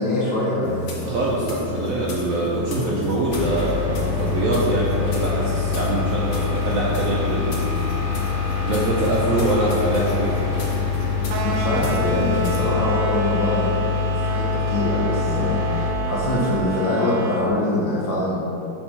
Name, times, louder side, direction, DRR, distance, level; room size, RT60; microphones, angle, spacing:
voice 1, 0.0-0.9 11.4-18.4, left 2 dB, 75° left, -6 dB, 1.5 m, -24 dB
sound 1, 0.6-12.7, left 4 dB, 60° left, 0.7 m, -32 dB
voice 2, 1.0-8.1 8.6-10.5, right 2 dB, 70° right, -4 dB, 0.8 m, -24 dB
sound 2, 3.3-15.9, left 5 dB, 20° right, 1.1 m, -25 dB
sound 3, 11.3-17.5, right 5 dB, 85° right, 1.4 m, -29 dB
4.5 x 3.8 x 5.4 m, 2.8 s
omnidirectional pair, 2.1 m